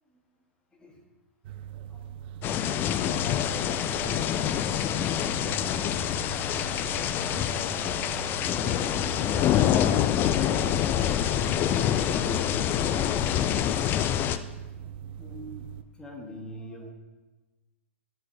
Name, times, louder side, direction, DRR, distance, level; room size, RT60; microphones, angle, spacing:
voice 1, 0.7-1.0 1.9-2.1 14.5-14.6 15.0-16.9, equal, 10° left, 0 dB, 1.3 m, -44 dB
sound 1, 1.4-15.8, right 9 dB, 50° right, 0.4 m, -41 dB
sound 2, 2.4-14.4, left 10 dB, 30° left, 0.3 m, -26 dB
voice 2, 3.0-4.3 4.5-6.5 6.9-8.2 8.5-10.8 11.2-12.5, left 4 dB, 55° left, 4 dB, 0.7 m, -43 dB
9.7 x 5.7 x 2.7 m, 1.2 s
hypercardioid pair, 110°, 7 cm